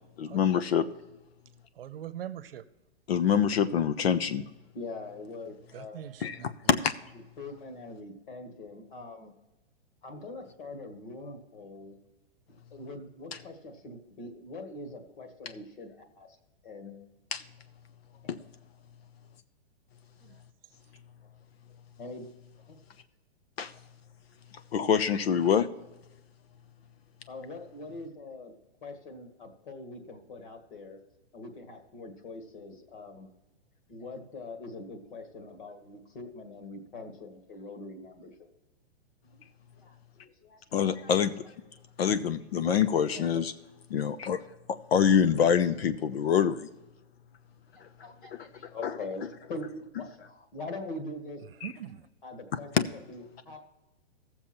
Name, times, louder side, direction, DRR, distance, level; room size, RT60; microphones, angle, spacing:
voice 1, 0.2-0.9 3.1-4.5 6.2-6.9 13.3-13.4 17.3-17.4 18.3-18.4 23.6-23.7 24.7-25.7 40.7-41.4 42.0-43.5 43.9-44.4 44.7-46.7 47.8-47.9 48.3-49.3 51.6-51.7 52.5-52.9, left 8 dB, 70° left, 11 dB, 0.8 m, -26 dB
voice 2, 1.8-2.6 5.7-6.5 20.2-20.4 51.4-52.1, right 11 dB, 65° right, 12 dB, 0.8 m, -42 dB
voice 3, 4.8-6.1 7.4-9.3 10.0-12.0 12.7-16.3 16.6-17.0 22.0-22.3 22.7-22.8 27.3-28.5 28.8-31.0 31.3-33.3 33.9-38.3 39.3-39.4 39.8-40.9 43.1-43.4 48.0-51.4 52.2-52.7 53.1-53.6, left 2 dB, 50° left, 5 dB, 1.9 m, -43 dB
15.5 x 7.2 x 4.4 m, 1.0 s
hypercardioid pair, 170°, 32 cm